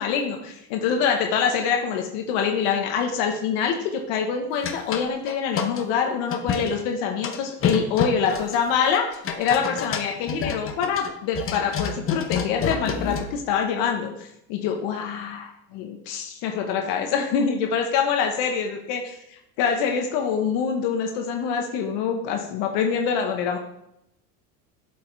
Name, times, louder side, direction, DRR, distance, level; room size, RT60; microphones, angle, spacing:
voice 1, 0.0-23.6, left 6 dB, 65° left, 3 dB, 1.2 m, -25 dB
sound 1, 4.6-5.8 6.3-6.8 7.2-13.3, left 6 dB, 30° left, 0.9 m, -29 dB
7.7 x 5.4 x 3.4 m, 0.81 s
supercardioid pair, 100°, 46 cm